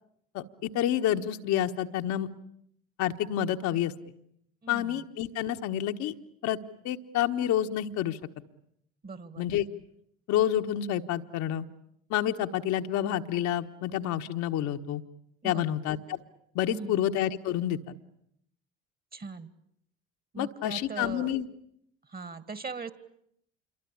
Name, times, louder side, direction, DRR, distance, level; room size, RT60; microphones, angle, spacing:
voice 1, 0.3-2.3 3.0-3.9 4.7-6.1 6.4-6.6 6.8-8.2 9.4-9.6 10.3-11.6 12.1-15.0 15.4-16.2 16.5-17.8 20.4-21.5, left 11 dB, 65° left, 5 dB, 1.5 m, -28 dB
voice 2, 4.6-5.0 9.0-9.5 15.4-15.7 16.7-17.0 19.1-19.5 20.3-21.3 22.1-22.9, right 4 dB, 30° right, 15 dB, 2.3 m, -40 dB
27.5 x 23.0 x 8.7 m, 0.71 s
hypercardioid pair, 65°, 32 cm